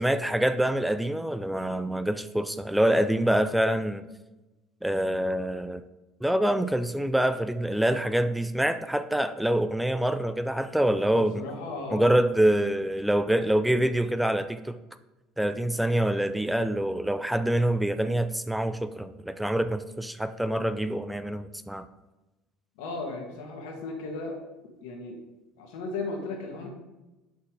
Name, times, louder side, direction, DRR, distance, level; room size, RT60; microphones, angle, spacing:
voice 1, 0.0-4.0 4.8-5.8 6.2-11.5 11.9-14.8 15.4-21.9, right 1 dB, 5° right, 12 dB, 0.3 m, -25 dB
voice 2, 11.1-12.2 22.8-24.4 24.8-25.2 25.6-26.7, left 3 dB, 80° left, 2 dB, 1.7 m, -35 dB
6.1 x 5.6 x 4.7 m, 1.1 s
supercardioid pair, 120°, 0 cm